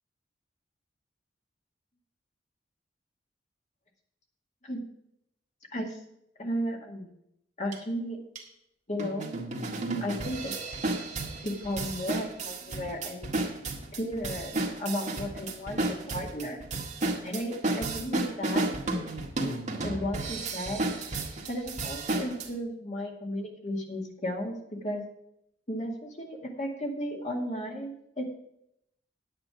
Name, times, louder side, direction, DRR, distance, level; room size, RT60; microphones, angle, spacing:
voice 1, 6.4-7.1 7.6-8.2 8.9-9.3 10.0-10.5 11.4-13.3 13.9-16.6 17.2-18.7 19.8-20.8 21.5-25.0 25.7-28.2, equal, 40° left, 1 dB, 2.1 m, -34 dB
sound 1, 7.7-7.8 8.4-8.5 9.0-22.5, right 2 dB, 40° right, 1.7 m, -32 dB
9.5 x 9.0 x 4.9 m, 0.76 s
head